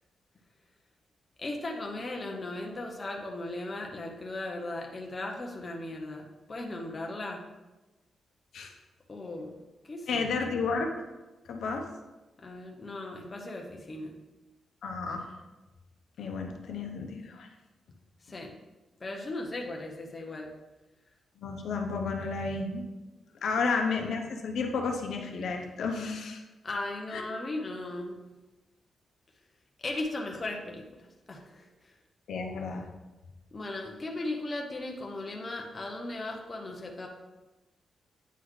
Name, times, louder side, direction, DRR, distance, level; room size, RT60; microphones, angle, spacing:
voice 1, 1.4-7.4 9.1-9.5 9.9-10.2 12.4-14.1 18.3-18.5 19.0-20.5 23.6-23.7 26.6-28.2 29.8-31.0 31.3-31.7 33.5-37.1, left 2 dB, 25° left, 1 dB, 0.6 m, -37 dB
voice 2, 10.1-11.0 11.5-11.9 14.8-15.3 16.2-17.5 21.4-22.8 23.4-26.4 27.1-27.2 32.3-32.9, left 4 dB, 70° left, 3 dB, 0.7 m, -32 dB
9.1 x 3.9 x 3.1 m, 1.1 s
wide cardioid pair, 180°, 0 cm